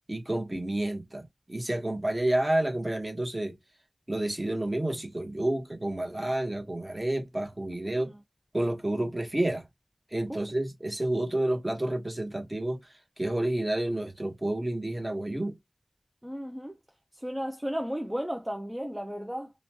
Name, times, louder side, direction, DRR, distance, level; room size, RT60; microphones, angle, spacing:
voice 1, 0.1-3.6 4.1-8.1 8.5-9.6 10.1-12.9 13.2-15.5, right 1 dB, 25° right, 0.9 m, -30 dB
voice 2, 7.8-8.2 10.3-10.4 16.2-16.7 17.2-19.5, equal, 10° right, 0.5 m, -34 dB
3.0 x 2.2 x 2.7 m
wide cardioid pair, 65°, 0 cm